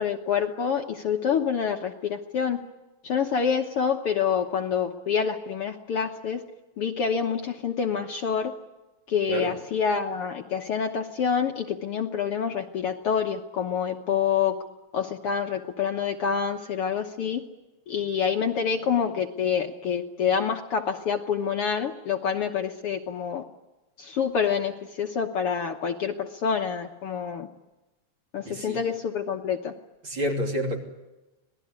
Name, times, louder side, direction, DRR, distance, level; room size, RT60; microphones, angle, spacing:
voice 1, 0.0-2.6 3.0-6.4 6.8-8.5 9.1-14.5 14.9-17.4 17.9-23.4 24.0-24.7 25.0-27.5 28.3-29.7, left 7 dB, 60° left, 4 dB, 1.8 m, -27 dB
voice 2, 28.5-28.8 30.0-30.8, right 1 dB, 40° right, 1 dB, 3.8 m, -29 dB
26.0 x 18.5 x 9.6 m, 1.1 s
omnidirectional pair, 3.3 m